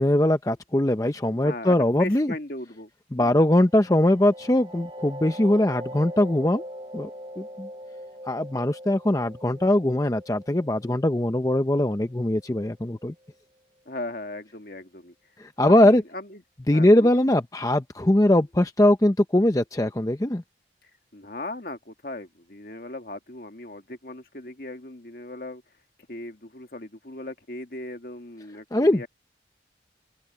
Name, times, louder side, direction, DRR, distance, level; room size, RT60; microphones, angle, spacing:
voice 1, 0.0-2.3 3.1-6.6 6.9-7.1 7.4-7.7 8.3-13.1 15.4-16.0 16.7-20.4 28.7-29.1, left 1 dB, 20° left, 0.6 m, -21 dB
voice 2, 1.3-2.9 13.9-15.1 15.6-16.4 16.7-17.2 21.1-25.6 26.1-29.1, left 2 dB, 55° left, 1.9 m, -38 dB
sound 1, 3.6-13.1, equal, 30° right, 2.6 m, -42 dB
open air
head